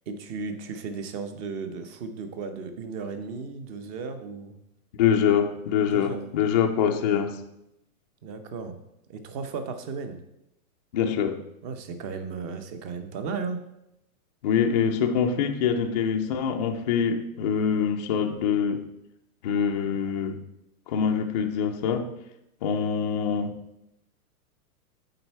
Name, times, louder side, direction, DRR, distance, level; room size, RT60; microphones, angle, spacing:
voice 1, 0.1-4.6 5.9-6.2 8.2-8.8 9.1-10.2 11.6-13.6, right 4 dB, 30° right, 8 dB, 0.7 m, -35 dB
voice 2, 5.0-7.4 10.9-11.4 14.4-18.8 19.4-20.4 20.9-22.1 22.6-23.6, left 7 dB, 30° left, 3 dB, 0.3 m, -24 dB
7.8 x 4.5 x 4.5 m, 0.85 s
hypercardioid pair, 145°, 45 cm